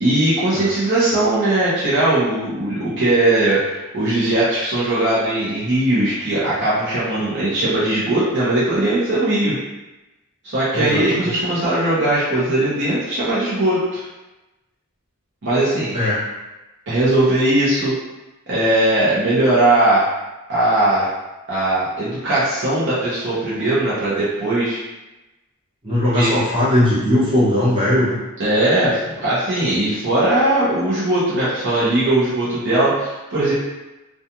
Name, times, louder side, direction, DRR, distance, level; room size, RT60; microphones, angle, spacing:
voice 1, 0.0-9.6 10.4-14.0 15.4-16.0 16.9-17.9 18.5-20.1 20.5-21.1 21.5-24.8 26.1-26.3 28.4-33.5, right 1 dB, 55° right, -9 dB, 0.7 m, -19 dB
voice 2, 10.7-11.3 15.9-16.2 25.8-28.2, left 1 dB, 25° right, -10 dB, 1.1 m, -18 dB
2.4 x 2.4 x 2.8 m, 1.0 s
head